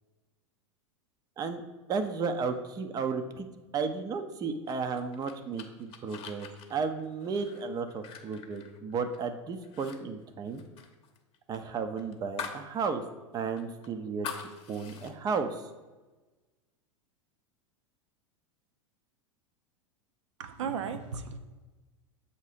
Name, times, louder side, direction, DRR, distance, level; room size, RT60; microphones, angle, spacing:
voice 1, 1.9-3.5 3.7-10.6 11.5-13.0 13.3-14.3 14.7-15.6, right 5 dB, 20° right, 8 dB, 0.5 m, -33 dB
sound 1, 4.7-9.3 9.6-10.0 10.2-12.7 13.0-13.1 13.6-15.1, left 7 dB, 35° left, 0.8 m, -44 dB
voice 2, 20.4-21.4, right 6 dB, 65° right, 8 dB, 0.6 m, -35 dB
7.4 x 2.8 x 5.0 m, 1.2 s
hypercardioid pair, 95°, 17 cm